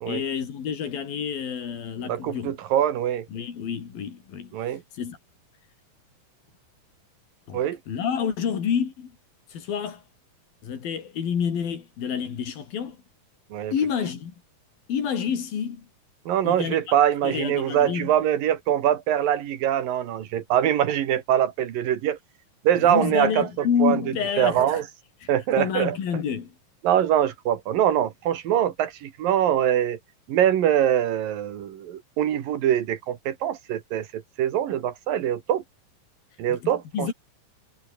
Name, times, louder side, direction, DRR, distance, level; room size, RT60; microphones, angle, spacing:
voice 1, 0.0-2.5 3.3-4.5 4.9-5.2 7.5-9.1 9.5-10.0 10.6-13.0 13.7-14.3 14.9-15.9 16.4-16.8 17.2-18.1 22.8-24.6 25.2-25.3 25.6-26.5 36.5-37.1, left 7 dB, 85° left, 5.1 m, -28 dB
voice 2, 2.0-3.3 4.5-4.8 7.5-7.8 13.5-13.7 16.3-22.2 22.6-24.0 24.4-24.9 25.3-26.0 26.8-30.0 30.3-35.6 36.4-37.1, right 10 dB, 75° right, 3.5 m, -23 dB
omnidirectional pair, 4.1 m